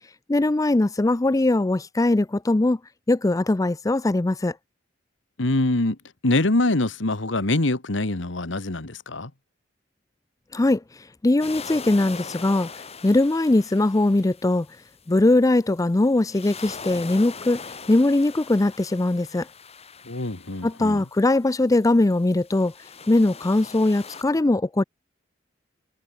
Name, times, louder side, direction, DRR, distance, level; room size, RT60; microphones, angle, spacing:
voice 1, 0.3-2.8 3.1-4.5 10.5-10.8 11.2-12.7 13.0-14.7 15.1-17.6 17.9-19.5 20.6-22.7 23.1-24.8, left 2 dB, 20° left, 0.4 m, -20 dB
voice 2, 5.4-6.0 6.2-9.3 20.0-21.0, left 2 dB, 75° left, 1.7 m, -24 dB
sound 1, 11.4-15.2 16.2-21.2 22.1-24.2, left 5 dB, 35° left, 2.6 m, -41 dB
head